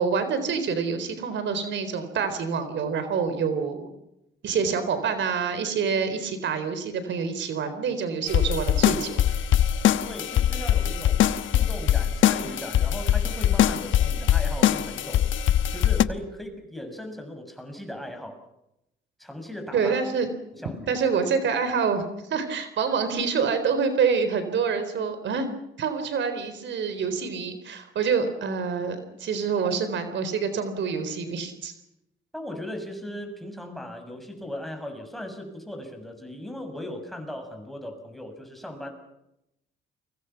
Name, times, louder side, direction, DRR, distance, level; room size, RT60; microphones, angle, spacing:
voice 1, 0.0-3.9 4.4-9.3 19.7-20.3 20.9-22.0 22.3-25.5 25.8-31.7, right 6 dB, 70° right, 10 dB, 4.1 m, -26 dB
sound 1, 8.3-16.0, left 11 dB, 75° left, 1.1 m, -22 dB
voice 2, 10.0-15.3 15.7-18.4 19.2-20.0 20.5-20.9 32.3-38.9, left 1 dB, ahead, 5 dB, 6.9 m, -38 dB
30.0 x 24.5 x 5.9 m, 0.85 s
cardioid pair, 90°, 20 cm